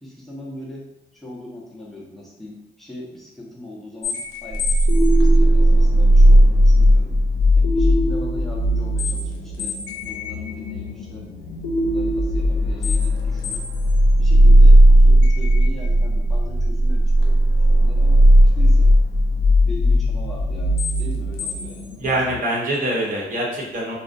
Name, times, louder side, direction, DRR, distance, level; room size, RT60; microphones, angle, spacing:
voice 1, 0.0-7.2 7.6-9.8 10.0-11.3 11.8-13.6 14.2-19.0 19.6-22.4, left 1 dB, ahead, -5 dB, 0.7 m, -40 dB
sound 1, 4.0-22.4, equal, 80° left, 0.6 m, -16 dB
voice 2, 22.0-24.0, right 1 dB, 40° right, -4 dB, 0.9 m, -24 dB
2.5 x 2.1 x 2.5 m, 0.88 s
cardioid pair, 90°, 20 cm